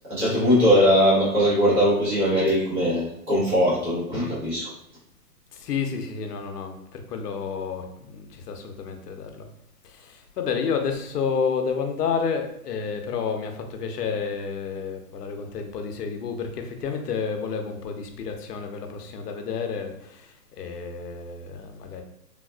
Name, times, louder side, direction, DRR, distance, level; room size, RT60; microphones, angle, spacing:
voice 1, 0.1-4.7, equal, 10° right, -10 dB, 0.8 m, -20 dB
voice 2, 5.5-9.5 9.8-22.0, left 6 dB, 75° left, 5 dB, 0.7 m, -30 dB
3.5 x 2.4 x 2.3 m, 0.74 s
hypercardioid pair, 160°, 48 cm